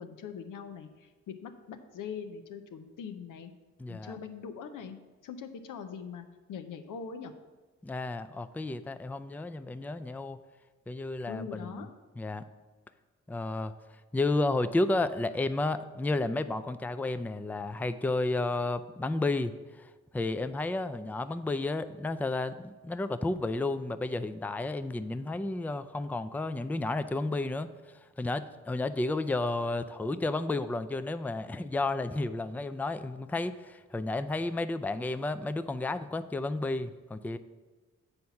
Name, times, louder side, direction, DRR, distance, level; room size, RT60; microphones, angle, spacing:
voice 1, 0.0-3.5 3.9-5.0 5.2-7.3 11.3-11.9, left 6 dB, 85° left, 7 dB, 0.7 m, -42 dB
voice 2, 3.8-4.2 7.8-10.4 10.9-11.8 12.2-12.4 13.3-13.7 14.1-27.7 28.2-37.4, left 2 dB, 5° left, 11 dB, 0.4 m, -32 dB
7.9 x 4.2 x 5.8 m, 1.3 s
cardioid pair, 50°, 31 cm